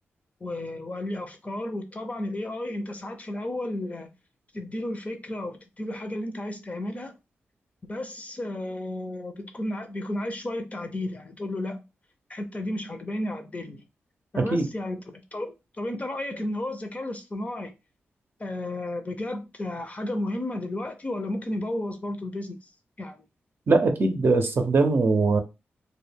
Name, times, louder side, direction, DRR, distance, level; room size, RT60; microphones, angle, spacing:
voice 1, 0.4-4.1 4.5-7.1 7.8-11.8 12.3-13.8 14.3-17.7 18.4-22.6 23.0-23.2, left 1 dB, 35° left, 0.6 m, -33 dB
voice 2, 14.4-14.7 23.7-25.4, right 3 dB, 55° right, 0.6 m, -21 dB
2.2 x 2.1 x 3.4 m
cardioid pair, 60°, 4 cm